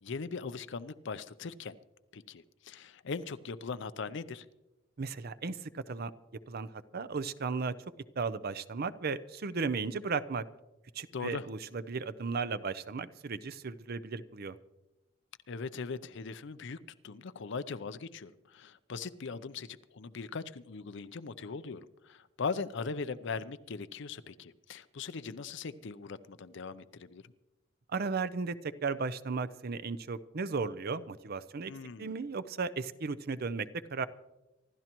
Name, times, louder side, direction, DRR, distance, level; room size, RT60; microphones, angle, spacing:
voice 1, 0.0-1.8 2.1-4.5 11.1-11.5 15.5-16.8 17.0-27.3 31.7-32.2, left 4 dB, 65° left, 14 dB, 0.6 m, -40 dB
voice 2, 5.0-6.1 6.5-6.7 6.9-7.7 8.2-10.4 10.9-14.6 27.9-31.7 32.0-34.1, right 4 dB, 50° right, 14 dB, 0.6 m, -35 dB
26.0 x 12.5 x 3.0 m, 1.0 s
head